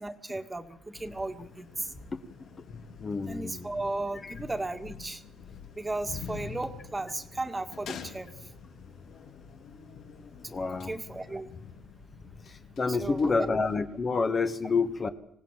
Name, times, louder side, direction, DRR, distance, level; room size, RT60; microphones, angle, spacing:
voice 1, 0.0-1.9 3.3-5.2 5.8-8.3 10.4-11.5 12.9-13.5, right 2 dB, 15° right, 8 dB, 2.0 m, -35 dB
sound 1, 0.9-13.8, left 6 dB, 65° left, 3.7 m, -46 dB
voice 2, 3.0-3.7 4.2-4.3 10.5-11.0 12.5-15.1, left 4 dB, 25° left, 8 dB, 1.6 m, -28 dB
26.0 x 17.5 x 7.5 m, 0.72 s
cardioid pair, 140°, 0 cm